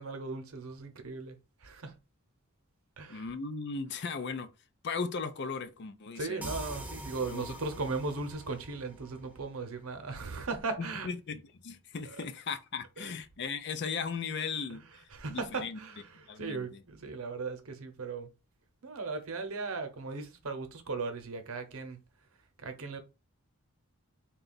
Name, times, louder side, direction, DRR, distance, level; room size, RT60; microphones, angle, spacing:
voice 1, 0.0-1.4 1.6-1.9 3.0-3.3 6.1-11.1 12.0-12.2 13.0-13.1 14.7-14.8 15.1-18.3 18.8-22.0 22.6-23.0, right 4 dB, 70° right, 0.8 m, -37 dB
voice 2, 3.1-4.5 4.8-6.5 7.3-7.6 10.8-14.8 15.3-15.8 16.3-16.8, left 5 dB, 50° left, 0.4 m, -37 dB
sound 1, 6.4-9.9, right 1 dB, 5° right, 0.6 m, -44 dB
3.8 x 2.3 x 4.0 m
head